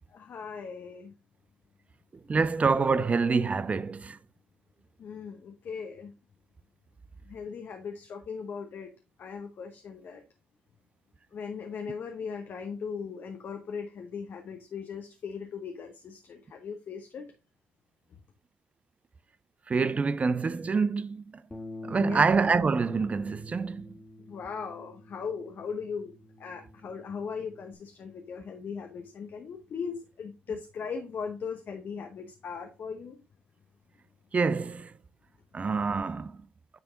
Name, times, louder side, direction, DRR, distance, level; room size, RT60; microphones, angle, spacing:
voice 1, 0.1-1.1 5.0-6.1 7.2-8.9 9.2-10.2 11.3-17.3 22.0-22.3 24.3-26.1 26.4-33.2, left 6 dB, 55° left, 1.0 m, -38 dB
voice 2, 2.3-4.2 19.7-21.4 21.8-23.9 34.3-34.9 35.5-36.4, right 4 dB, 35° right, 0.5 m, -26 dB
Bass guitar, 21.5-27.8, left 2 dB, 15° left, 1.9 m, -47 dB
9.3 x 3.5 x 3.8 m
supercardioid pair, 60°, 4 cm